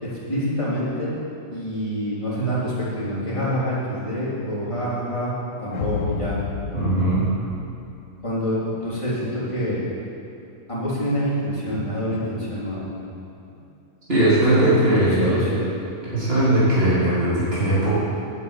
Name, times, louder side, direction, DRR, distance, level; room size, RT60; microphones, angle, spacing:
voice 1, 0.0-1.2 1.5-5.3 5.6-6.4 8.2-9.8 10.7-13.0 13.5-13.6 14.3-15.7, equal, 20° left, -9 dB, 3.8 m, -26 dB
sound 1, 5.7-8.2, left 7 dB, 70° left, 1.0 m, -31 dB
voice 2, 6.7-7.3 14.1-15.4 16.1-17.9, right 1 dB, 45° right, -11 dB, 3.7 m, -19 dB
10.5 x 8.4 x 8.3 m, 2.7 s
omnidirectional pair, 1.5 m